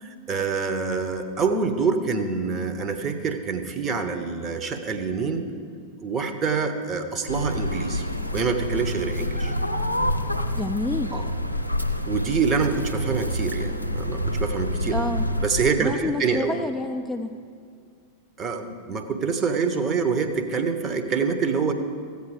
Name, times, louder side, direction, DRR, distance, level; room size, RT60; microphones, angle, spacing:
voice 1, 0.3-5.4 6.0-8.1 8.3-9.5 11.1-11.3 12.1-15.0 15.4-16.6 18.4-21.7, right 5 dB, 25° right, 6 dB, 1.0 m, -26 dB
sound 1, 7.3-15.7, equal, 85° left, 0.5 m, -27 dB
voice 2, 10.5-11.2 14.9-15.2 15.8-17.3, left 2 dB, ahead, 3 dB, 0.5 m, -28 dB
14.5 x 8.2 x 4.9 m, 2.2 s
figure-of-eight pair, 90°, 0 cm